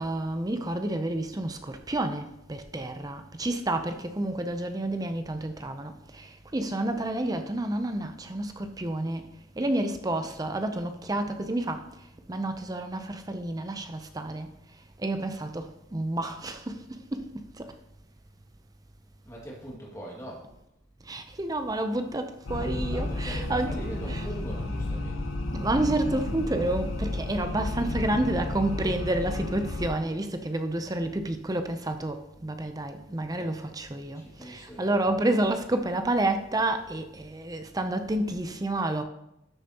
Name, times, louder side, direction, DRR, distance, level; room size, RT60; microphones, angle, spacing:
voice 1, 0.0-14.5 15.0-17.7 21.0-23.7 24.1-24.2 25.5-39.0, right 1 dB, 20° right, 0.5 m, -30 dB
voice 2, 19.2-20.5 22.8-25.2 33.3-33.6 34.1-35.2, right 1 dB, 15° left, 2.1 m, -42 dB
sound 1, 22.5-29.9, left 1 dB, 85° left, 1.0 m, -32 dB
13.0 x 6.8 x 2.9 m
head